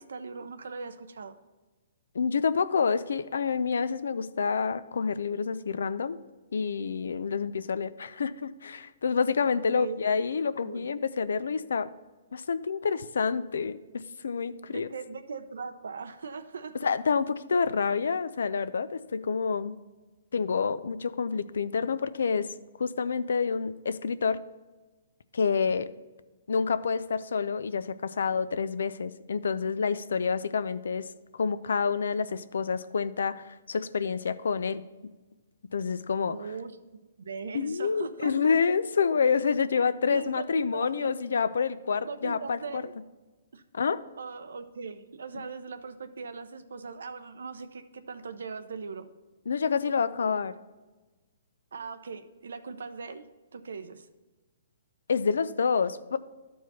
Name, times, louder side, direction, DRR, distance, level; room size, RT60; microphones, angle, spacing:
voice 1, 0.0-1.4 9.7-10.0 10.6-10.9 14.7-16.8 36.3-38.5 39.8-41.1 42.1-42.9 43.5-43.6 44.2-49.1 51.7-53.2 53.5-54.1, right 5 dB, 85° right, 10 dB, 0.7 m, -40 dB
voice 2, 2.1-6.2 6.5-11.9 12.3-14.9 16.8-19.8 20.3-24.4 25.3-25.9 26.5-31.1 31.3-34.8 35.7-36.4 37.5-42.8 43.7-44.0 49.5-50.5 55.1-56.2, left 5 dB, 85° left, 15 dB, 0.4 m, -28 dB
12.0 x 4.7 x 4.1 m, 1.2 s
hypercardioid pair, 155°, 0 cm